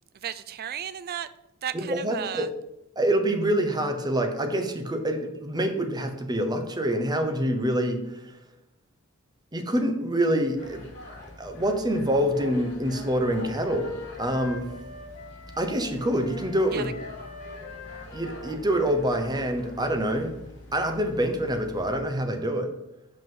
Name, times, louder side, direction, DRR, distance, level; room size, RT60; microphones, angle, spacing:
voice 1, 0.2-1.3 1.6-2.5 16.7-16.8, right 9 dB, 45° right, 13 dB, 0.4 m, -34 dB
voice 2, 1.7-2.5 3.0-8.0 9.5-10.9 11.4-13.9 14.2-14.7 15.6-16.9 18.1-20.3 20.7-22.7, right 1 dB, 20° right, 5 dB, 0.8 m, -26 dB
sound 1, 10.5-22.0, left 2 dB, 55° left, 2.6 m, -45 dB
Wind instrument woodwind instrument, 12.3-15.9 16.2-20.0, left 2 dB, 40° left, 1.8 m, -44 dB
5.7 x 5.5 x 5.5 m, 0.89 s
head